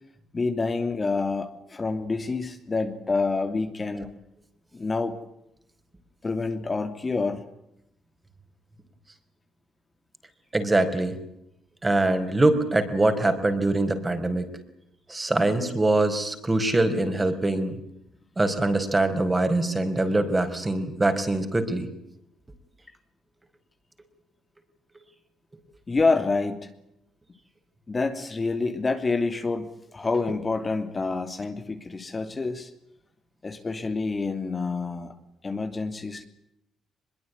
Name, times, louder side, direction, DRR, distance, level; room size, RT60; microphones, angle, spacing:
voice 1, 0.3-4.1 4.7-5.2 6.2-7.4 25.9-26.7 27.9-29.7 29.9-32.7 33.4-35.1 35.4-36.2, left 3 dB, 30° left, 7 dB, 3.0 m, -27 dB
voice 2, 10.5-11.2 11.8-14.5 15.1-17.8 18.4-21.9 30.3-30.4, right 2 dB, 20° right, 9 dB, 5.0 m, -23 dB
23.0 x 22.5 x 9.6 m, 0.80 s
cardioid pair, 90°, 0 cm